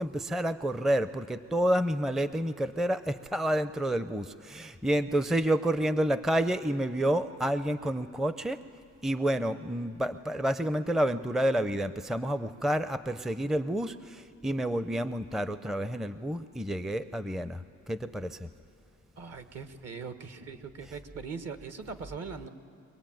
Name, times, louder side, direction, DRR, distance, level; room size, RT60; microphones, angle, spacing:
voice 1, 0.0-8.6 9.0-18.5, right 1 dB, ahead, 12 dB, 0.5 m, -29 dB
voice 2, 19.2-22.5, right 5 dB, 55° right, 8 dB, 1.6 m, -41 dB
24.5 x 19.5 x 9.1 m, 2.4 s
cardioid pair, 90°, 30 cm